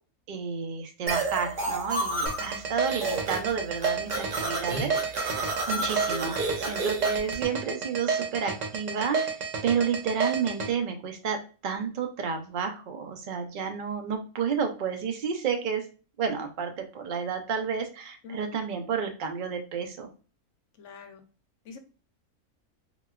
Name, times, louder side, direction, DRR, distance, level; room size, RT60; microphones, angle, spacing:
voice 1, 0.3-9.3 9.6-11.4 11.6-15.8 16.2-20.1, right 6 dB, 85° right, 4 dB, 0.4 m, -31 dB
sound 1, 1.1-2.6 2.9-3.5 3.8-7.3, right 2 dB, 45° right, 0.7 m, -30 dB
sound 2, 2.3-10.7, right 5 dB, 65° right, 1.0 m, -30 dB
voice 2, 18.2-18.6 20.8-21.2 21.6-21.8, left 5 dB, 65° left, 6 dB, 0.9 m, -45 dB
3.9 x 2.2 x 2.2 m, 0.36 s
omnidirectional pair, 1.5 m